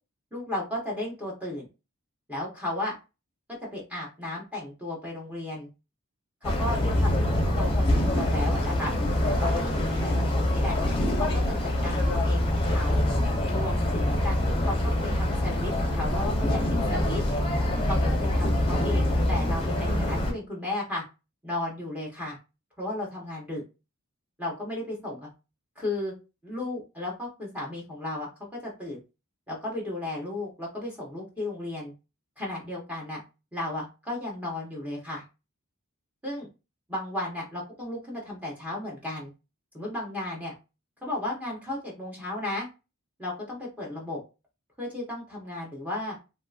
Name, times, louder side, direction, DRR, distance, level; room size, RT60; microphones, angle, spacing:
voice 1, 0.3-1.7 2.3-3.0 3.7-5.7 6.4-8.9 9.3-10.8 11.2-13.0 13.5-14.8 15.0-17.2 17.8-21.0 21.4-22.4 22.8-23.6 24.4-25.3 25.8-26.1 26.4-28.3 28.6-29.0 29.5-31.9 32.4-33.2 33.5-35.2 36.2-36.5 36.9-39.3 39.7-40.5 41.0-42.7 43.2-44.2 44.8-46.2, left 1 dB, 5° right, -3 dB, 0.9 m, -34 dB
sound 1, 6.4-20.3, left 1 dB, 25° left, 0.8 m, -25 dB
3.0 x 2.8 x 2.4 m, 0.28 s
head